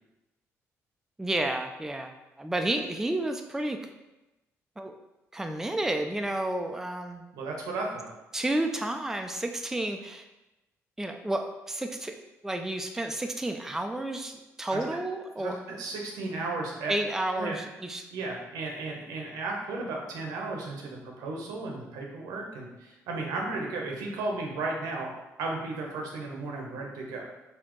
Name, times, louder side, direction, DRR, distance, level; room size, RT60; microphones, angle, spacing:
voice 1, 1.2-2.1 2.4-3.8 4.8-4.9 5.3-7.4 8.3-10.3 11.0-12.1 12.4-15.6 16.9-18.1, right 1 dB, 5° right, 5 dB, 0.3 m, -31 dB
voice 2, 7.3-8.1 14.7-14.8 15.3-16.9 17.3-17.6 18.1-25.1 25.4-27.3, right 3 dB, 85° right, 0 dB, 0.8 m, -34 dB
4.1 x 2.8 x 3.0 m, 1.0 s
supercardioid pair, 70°, 6 cm